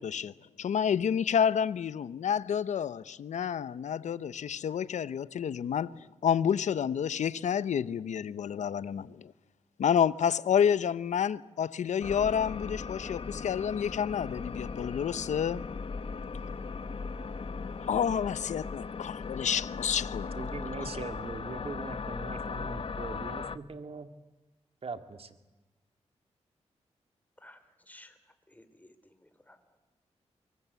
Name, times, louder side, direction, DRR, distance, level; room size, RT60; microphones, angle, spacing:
voice 1, 0.0-9.3 9.8-15.7 17.9-20.4 20.8-20.9, left 8 dB, 80° left, 0.8 m, -29 dB
sound 1, 12.0-23.6, left 4 dB, 50° left, 1.0 m, -38 dB
voice 2, 20.4-24.1 24.8-25.3, right 4 dB, 55° right, 2.3 m, -41 dB
voice 3, 27.4-29.9, left 1 dB, 15° left, 3.7 m, -57 dB
25.5 x 23.0 x 8.3 m
cardioid pair, 60°, 12 cm